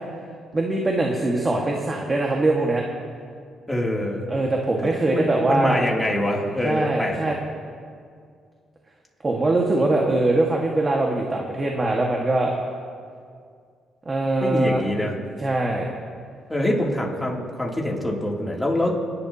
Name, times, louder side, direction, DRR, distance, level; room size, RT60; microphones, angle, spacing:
voice 1, 0.5-2.8 4.3-5.8 6.6-7.4 9.2-12.5 14.0-14.8 15.4-15.9, right 2 dB, 25° right, -1 dB, 1.6 m, -22 dB
voice 2, 3.7-4.2 5.1-7.3 9.8-9.9 14.4-15.1 16.5-18.9, left 1 dB, 10° left, -2 dB, 2.8 m, -25 dB
28.0 x 11.5 x 2.9 m, 2.2 s
cardioid pair, 90°, 0 cm